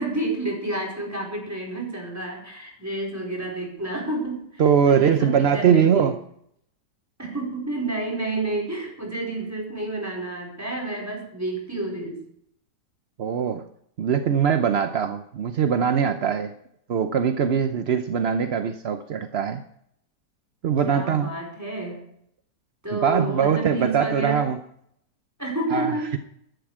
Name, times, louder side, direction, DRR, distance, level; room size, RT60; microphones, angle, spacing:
voice 1, 0.0-6.1 7.2-12.2 20.8-22.1 22.8-24.5 25.4-26.2, right 2 dB, 10° right, 0 dB, 4.8 m, -30 dB
voice 2, 4.6-6.2 13.2-13.6 14.0-16.5 16.9-19.6 20.6-21.3 22.9-24.6 25.7-25.9, right 7 dB, 55° right, 8 dB, 0.7 m, -22 dB
15.0 x 11.5 x 4.9 m, 0.70 s
omnidirectional pair, 1.9 m